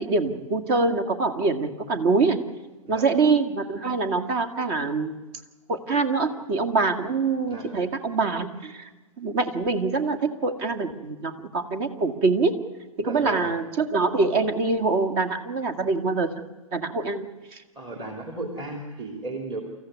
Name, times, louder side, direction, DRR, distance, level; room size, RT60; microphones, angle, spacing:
voice 1, 0.0-2.4 2.9-5.1 5.7-8.9 9.2-12.5 13.0-16.3 16.7-17.3 17.5-17.6, right 4 dB, 45° right, 8 dB, 2.1 m, -24 dB
voice 2, 13.0-13.5 17.7-19.6, right 2 dB, 25° right, 3 dB, 2.8 m, -34 dB
28.0 x 14.5 x 9.5 m, 1.2 s
hypercardioid pair, 120°, 17 cm